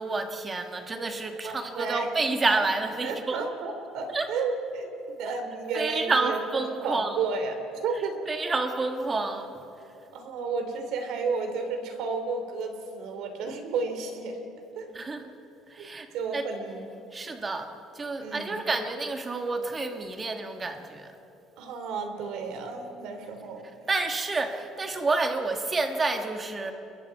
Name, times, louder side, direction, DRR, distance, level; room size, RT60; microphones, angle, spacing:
voice 1, 0.0-3.4 4.1-4.3 5.7-7.1 8.3-9.5 14.9-15.2 15.7-16.1 16.3-16.4 17.1-17.7 17.9-21.1 23.9-26.7, right 3 dB, 20° right, 5 dB, 1.5 m, -29 dB
voice 2, 1.4-2.2 3.0-4.9 5.1-7.6 7.8-8.2 10.1-14.4 14.8-14.9 15.8-15.9 16.1-16.9 18.2-18.5 21.6-23.7, right 4 dB, 65° right, 6 dB, 2.9 m, -32 dB
29.5 x 22.0 x 4.7 m, 2.9 s
cardioid pair, 165°, 0 cm